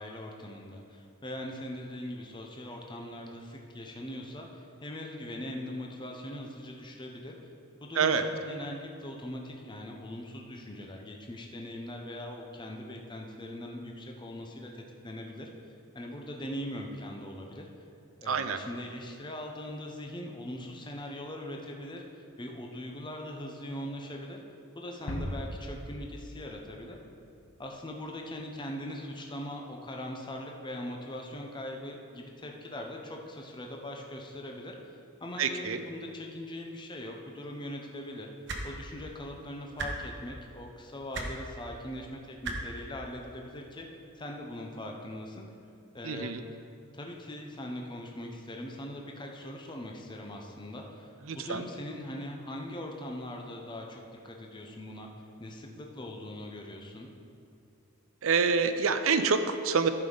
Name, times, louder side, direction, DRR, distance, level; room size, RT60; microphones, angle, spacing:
voice 1, 0.0-7.4 7.8-15.5 15.9-17.7 18.2-24.4 24.7-27.0 27.6-34.7 35.2-38.3 38.6-43.9 44.2-45.4 45.9-46.5 46.9-55.1 55.4-57.1, left 1 dB, 20° left, 1 dB, 0.8 m, -41 dB
voice 2, 18.3-18.6 35.4-35.8 46.0-46.4 51.3-51.7 58.2-59.9, right 5 dB, 70° right, 9 dB, 0.6 m, -27 dB
sound 1, 25.1-27.6, left 1 dB, 80° left, 1.2 m, -39 dB
sound 2, 38.5-38.6 39.8-39.9 41.1-41.3 42.4-42.6 43.8-43.9, right 3 dB, 55° right, 1.1 m, -34 dB
14.5 x 5.5 x 4.0 m, 2.6 s
head